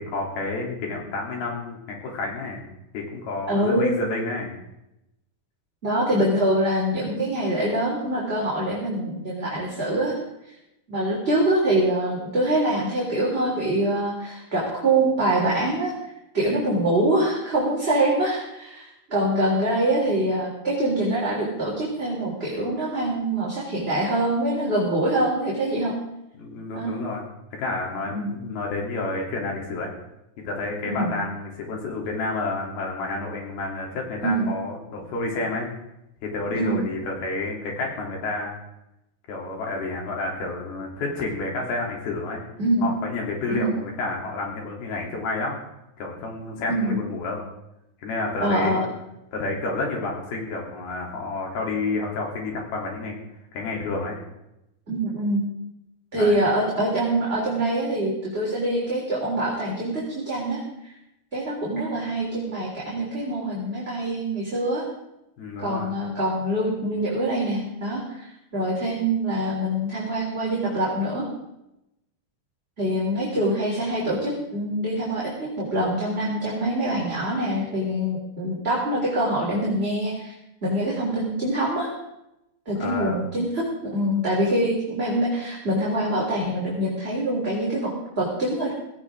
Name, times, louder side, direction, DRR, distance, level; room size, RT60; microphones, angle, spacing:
voice 1, 0.0-4.6 26.4-27.2 27.5-29.9 30.5-35.7 36.2-38.6 39.3-42.4 42.8-45.6 46.0-47.4 48.0-48.8 49.3-53.2 53.5-54.2 56.2-56.4 65.4-65.9 82.8-83.3, left 3 dB, 85° left, -1 dB, 5.2 m, -30 dB
voice 2, 3.5-4.0 5.8-10.1 10.9-15.9 16.3-25.9 26.7-26.9 28.1-28.4 30.8-31.2 34.2-34.5 36.5-36.9 42.6-42.9 43.5-43.7 46.7-47.0 48.4-48.8 54.9-55.4 56.1-60.6 61.3-64.8 65.6-71.3 72.8-80.3 80.6-81.9 82.6-88.7, right 1 dB, 15° right, -6 dB, 3.4 m, -24 dB
17.5 x 17.0 x 3.8 m, 0.87 s
omnidirectional pair, 4.3 m